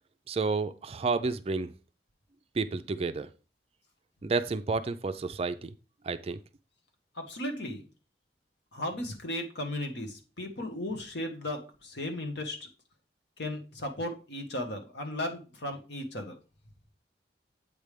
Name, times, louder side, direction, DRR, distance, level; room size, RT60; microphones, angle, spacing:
voice 1, 0.3-1.7 2.6-3.3 4.2-5.7 6.0-6.4, right 4 dB, 35° right, 11 dB, 0.4 m, -30 dB
voice 2, 7.1-7.8 8.7-12.7 13.4-16.3, left 1 dB, 75° left, 4 dB, 1.4 m, -36 dB
8.1 x 3.4 x 5.1 m, 0.34 s
head